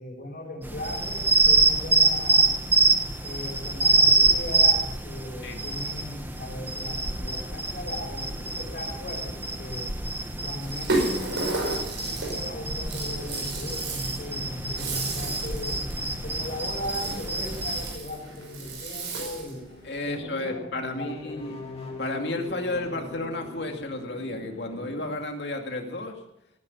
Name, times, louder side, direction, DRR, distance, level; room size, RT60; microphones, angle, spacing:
voice 1, 0.0-2.5 3.2-9.9 10.4-15.8 16.2-19.6 20.1-20.6 21.0-21.4, left 1 dB, 50° left, 0 dB, 6.0 m, -38 dB
sound 1, 0.6-18.0, right 3 dB, 10° right, 1.3 m, -26 dB
sound 2, 8.3-25.2, left 2 dB, 35° left, 2.7 m, -44 dB
Rattle (instrument), 10.6-19.6, right 2 dB, 85° right, 5.4 m, -33 dB
voice 2, 19.8-21.6 22.0-26.2, left 2 dB, 65° left, 3 dB, 2.4 m, -32 dB
18.5 x 10.5 x 5.6 m, 0.79 s
head